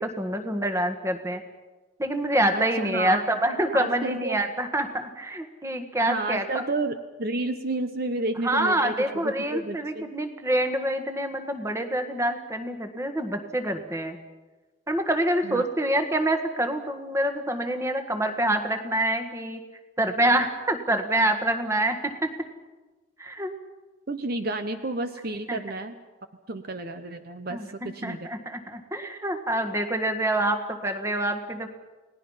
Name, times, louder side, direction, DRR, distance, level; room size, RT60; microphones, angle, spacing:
voice 1, 0.0-1.4 2.0-6.4 8.4-14.2 14.9-19.6 20.0-22.3 23.2-23.5 25.5-25.6 27.5-31.7, right 1 dB, 15° right, 6 dB, 1.7 m, -26 dB
voice 2, 2.5-3.2 3.7-4.4 6.1-10.1 15.4-15.6 24.1-26.0 26.5-28.3, right 2 dB, 50° right, 8 dB, 1.0 m, -31 dB
30.0 x 18.5 x 5.7 m, 1.2 s
head